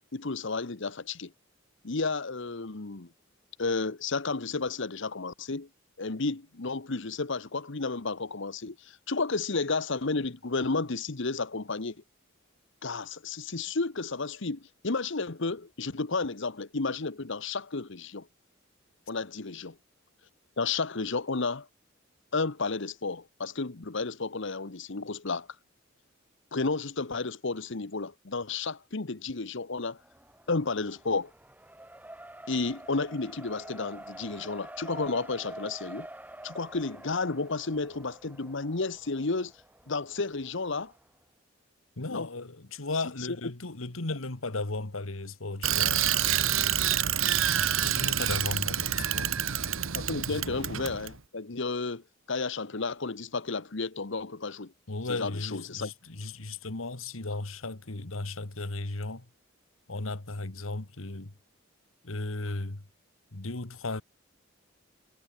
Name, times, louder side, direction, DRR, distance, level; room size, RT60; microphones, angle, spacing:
voice 1, 0.1-1.3 1.8-3.1 3.6-5.7 6.0-12.0 12.8-18.3 19.1-19.8 20.6-21.7 22.3-25.5 26.5-30.0 30.5-31.3 32.5-36.1 36.4-39.5 39.9-40.9 42.1-42.3 49.9-52.0 52.3-54.7 55.1-55.9, left 3 dB, 65° left, 1.2 m, -32 dB
Race car auto racing, 30.0-41.0, right 1 dB, 10° right, 2.5 m, -47 dB
voice 2, 42.0-46.2 47.8-49.4 50.3-50.4 54.9-59.3 59.9-61.3 62.0-62.9 63.3-64.0, left 2 dB, 85° left, 1.9 m, -35 dB
Bicycle, 45.6-51.1, right 10 dB, 80° right, 1.4 m, -27 dB
head